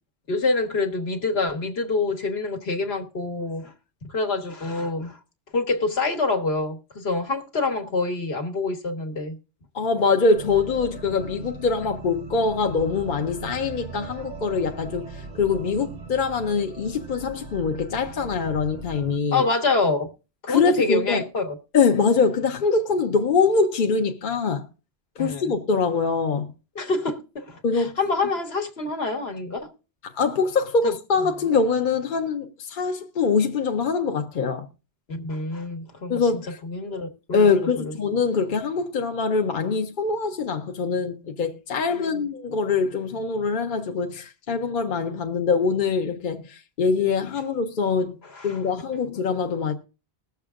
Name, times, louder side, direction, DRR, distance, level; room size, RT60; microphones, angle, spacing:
voice 1, 0.3-3.7 4.1-5.2 5.5-9.4 19.3-20.1 20.4-21.5 25.2-25.5 26.7-29.7 30.8-30.9 35.1-37.5 37.8-37.9 41.9-42.3 48.2-48.6, left 3 dB, 75° left, 1.5 m, -26 dB
voice 2, 9.7-19.4 20.5-21.2 21.7-24.6 25.2-26.5 27.6-27.9 30.1-34.7 36.1-36.6 37.3-48.2 48.4-49.7, left 4 dB, 55° left, 0.8 m, -23 dB
sound 1, 10.4-19.2, right 4 dB, 45° right, 0.8 m, -39 dB
21.0 x 7.0 x 2.4 m
omnidirectional pair, 1.1 m